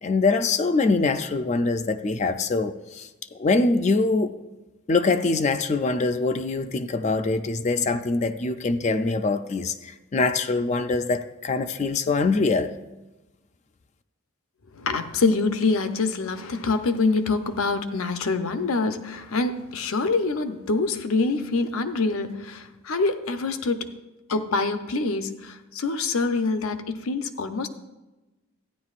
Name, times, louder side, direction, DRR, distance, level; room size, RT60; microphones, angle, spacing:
voice 1, 0.0-3.1 3.4-4.3 4.9-12.7, left 3 dB, 30° left, 0.4 m, -23 dB
voice 2, 14.7-23.9 24.3-27.7, left 3 dB, 80° left, 0.7 m, -25 dB
13.5 x 10.0 x 2.4 m
head